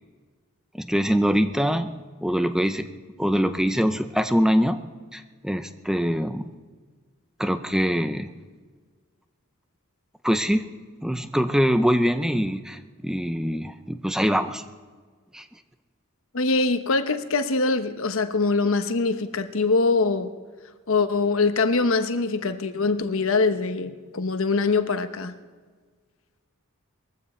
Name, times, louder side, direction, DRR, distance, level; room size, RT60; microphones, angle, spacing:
voice 1, 0.7-1.9 2.2-2.9 3.2-4.8 5.1-6.5 7.4-8.3 10.2-10.6 11.0-14.6 15.3-15.4, equal, 5° right, 0.6 m, -23 dB
voice 2, 16.3-20.3 20.9-25.3, left 3 dB, 65° left, 1.0 m, -23 dB
21.0 x 15.0 x 4.4 m
head